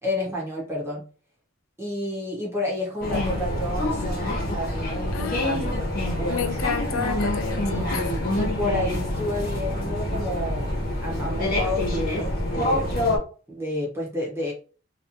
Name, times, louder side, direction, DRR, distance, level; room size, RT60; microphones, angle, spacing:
voice 1, 0.0-1.0 1.8-5.9 6.1-6.5 7.6-13.1 13.5-14.5, left 1 dB, 10° right, 1.2 m, -31 dB
sound 1, 3.0-13.2, left 1 dB, 45° left, 1.2 m, -26 dB
voice 2, 5.1-5.8 6.3-8.2, left 7 dB, 80° left, 0.6 m, -31 dB
3.3 x 2.9 x 2.9 m
head